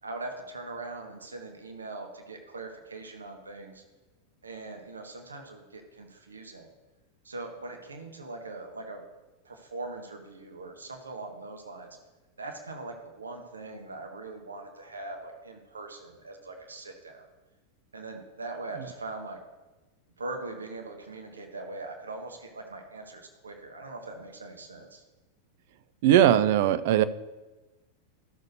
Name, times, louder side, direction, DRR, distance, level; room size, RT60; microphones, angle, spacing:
voice 1, 0.0-3.8 4.4-6.7 7.2-9.0 9.4-12.0 12.4-17.3 17.9-19.4 20.2-25.0, right 2 dB, 75° right, 3 dB, 1.1 m, -41 dB
voice 2, 26.0-27.0, right 11 dB, 50° right, 13 dB, 0.4 m, -20 dB
13.5 x 6.4 x 2.7 m, 1.1 s
figure-of-eight pair, 90°, 0 cm